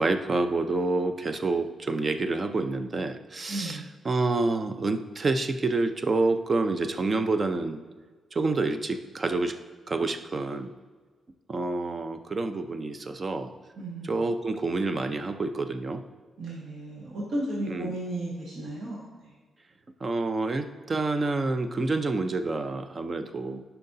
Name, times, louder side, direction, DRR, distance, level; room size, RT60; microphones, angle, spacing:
voice 1, 0.0-7.8 8.3-9.6 9.9-10.7 11.5-13.5 14.0-16.0 17.7-17.9 20.0-23.6, right 3 dB, 40° right, 8 dB, 0.6 m, -28 dB
voice 2, 3.5-3.9 13.8-14.2 16.4-19.1, right 1 dB, 75° right, -6 dB, 1.7 m, -34 dB
10.5 x 5.7 x 2.7 m, 1.4 s
cardioid pair, 85°, 0 cm